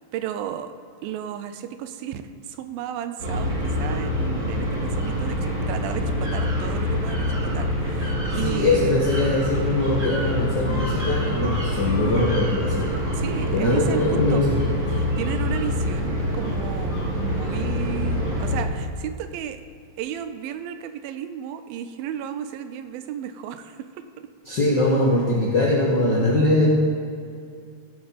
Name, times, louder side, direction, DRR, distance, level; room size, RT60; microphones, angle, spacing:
voice 1, 0.1-0.7 1.0-2.2 2.5-3.5 3.8-9.0 12.0-12.3 13.1-14.7 15.0-19.6 20.0-23.9 24.2-24.3, right 10 dB, 80° right, 9 dB, 2.4 m, -33 dB
sound 1, 3.2-18.6, left 1 dB, 30° right, 3.2 m, -25 dB
voice 2, 8.3-12.9 13.5-14.6 24.4-26.7, left 2 dB, 80° left, -4 dB, 0.9 m, -22 dB
16.0 x 7.7 x 4.2 m, 2.4 s
omnidirectional pair, 4.2 m